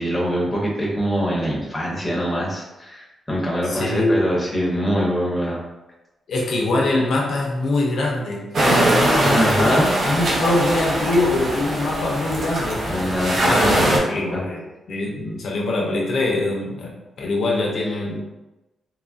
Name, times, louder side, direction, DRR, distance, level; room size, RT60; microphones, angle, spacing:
voice 1, 0.0-5.6 9.2-9.9 12.9-14.0 14.3-14.4, equal, 15° left, -3 dB, 0.7 m, -23 dB
voice 2, 3.7-4.2 6.3-12.9 13.5-13.8 14.1-14.6 14.9-18.2, left 2 dB, 65° left, -1 dB, 0.4 m, -23 dB
sound 1, 8.5-14.0, right 1 dB, 55° right, 0.6 m, -21 dB
2.9 x 2.3 x 2.4 m, 1.0 s
cardioid pair, 120°, 0 cm